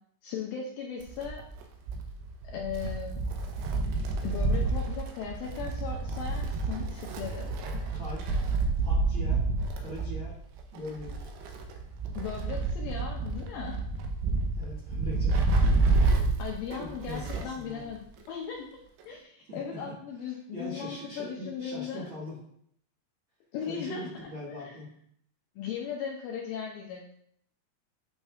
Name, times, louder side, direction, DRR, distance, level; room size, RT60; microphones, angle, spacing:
voice 1, 0.2-1.4 2.4-3.2 4.2-7.5 12.2-13.8 16.4-18.0 18.3-18.7 19.1-22.1 23.5-24.1 24.5-24.8 25.6-27.1, left 7 dB, 75° left, 0 dB, 2.1 m, -37 dB
Wind, 1.0-17.6 17.9-18.0 19.0-19.1, right 3 dB, 85° right, 2.8 m, -29 dB
voice 2, 7.9-8.3 8.8-9.4 9.8-10.3 10.7-11.3 14.5-15.5 16.7-17.9 19.5-19.9 20.5-22.4 23.6-24.9, left 1 dB, 45° right, -7 dB, 1.9 m, -41 dB
9.0 x 5.8 x 2.4 m, 0.66 s
omnidirectional pair, 4.7 m